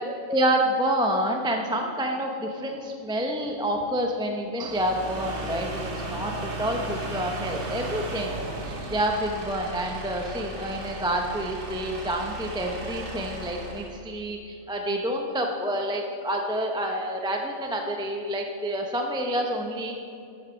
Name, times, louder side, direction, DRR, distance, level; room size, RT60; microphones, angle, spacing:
voice 1, 0.0-20.0, right 1 dB, 5° right, 2 dB, 0.6 m, -28 dB
sound 1, 4.6-14.0, right 1 dB, 45° right, 1.8 m, -35 dB
10.5 x 8.1 x 6.2 m, 2.4 s
omnidirectional pair, 1.3 m